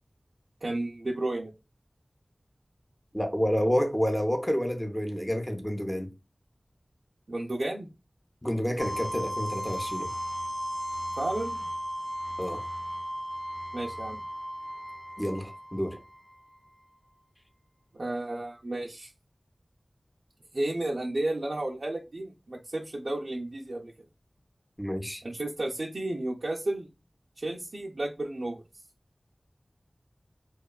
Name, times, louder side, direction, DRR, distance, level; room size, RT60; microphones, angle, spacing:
voice 1, 0.6-1.5 7.3-7.9 11.2-11.7 13.7-14.2 17.9-19.1 20.5-23.9 25.2-26.9 27.4-28.6, right 1 dB, 75° right, 0.4 m, -32 dB
voice 2, 3.1-6.1 8.4-10.1 12.4-12.6 15.2-16.0 24.8-25.2, equal, 10° left, 0.6 m, -29 dB
sound 1, 8.8-16.6, equal, 55° left, 0.7 m, -36 dB
2.8 x 2.2 x 2.3 m
wide cardioid pair, 45°, 0 cm